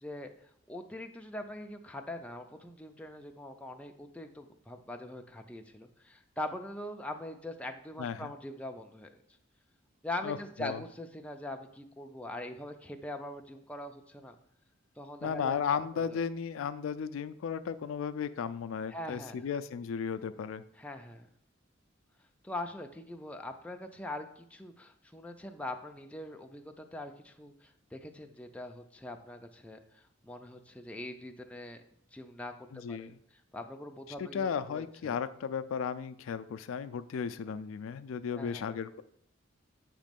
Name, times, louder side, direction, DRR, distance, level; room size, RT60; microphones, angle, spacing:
voice 1, 0.7-9.1 10.0-14.4 15.0-16.2 18.9-19.5 20.8-21.3 22.4-31.8 32.1-33.2 33.5-35.2 38.3-38.7, left 1 dB, 5° left, 4 dB, 0.4 m, -42 dB
voice 2, 8.0-8.3 10.2-10.8 15.2-20.6 32.7-33.2 34.2-39.0, left 6 dB, 80° left, 12 dB, 0.3 m, -35 dB
7.4 x 3.1 x 5.1 m, 0.69 s
head